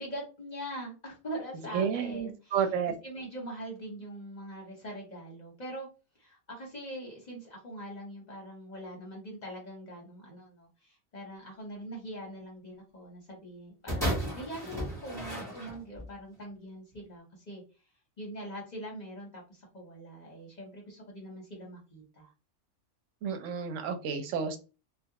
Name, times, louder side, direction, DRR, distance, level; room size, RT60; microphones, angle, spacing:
voice 1, 0.0-2.7 3.0-5.9 6.2-17.6 18.2-22.3, right 1 dB, 45° left, -1 dB, 0.7 m, -43 dB
voice 2, 1.7-2.9 23.2-24.6, right 7 dB, 85° right, 6 dB, 0.9 m, -31 dB
sound 1, 13.9-16.1 16.9-17.0, equal, 5° left, 0.8 m, -34 dB
2.3 x 2.1 x 2.7 m, 0.32 s
omnidirectional pair, 1.3 m